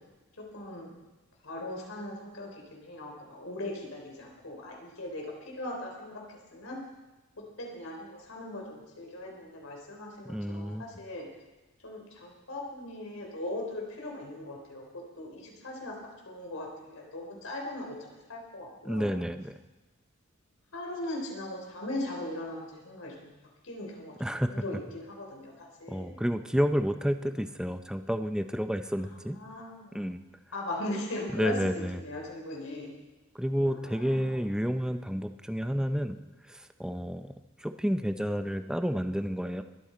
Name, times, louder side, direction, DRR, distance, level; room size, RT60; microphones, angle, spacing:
voice 1, 0.4-0.9 1.4-6.8 7.6-11.3 11.8-15.9 16.3-19.1 20.7-23.3 23.6-26.2 29.0-30.0 30.5-32.9 33.7-34.4, left 1 dB, 90° left, -1 dB, 3.6 m, -39 dB
voice 2, 10.2-10.8 18.8-19.6 24.2-24.6 25.9-29.4 29.9-30.2 31.3-32.0 33.3-36.2 36.5-39.6, equal, 5° right, 8 dB, 0.6 m, -30 dB
23.0 x 8.9 x 4.4 m, 1.1 s
head